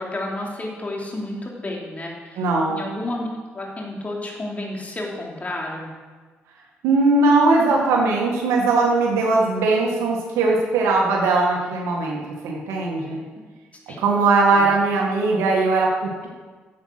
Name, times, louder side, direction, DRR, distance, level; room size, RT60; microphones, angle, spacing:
voice 1, 0.0-2.4 2.7-5.9 13.9-14.0 14.5-14.7, left 1 dB, 30° left, -1 dB, 3.1 m, -31 dB
voice 2, 2.4-2.8 6.8-13.2 14.0-16.3, right 3 dB, 90° right, -1 dB, 1.8 m, -19 dB
10.5 x 7.9 x 6.0 m, 1.4 s
supercardioid pair, 65°, 5 cm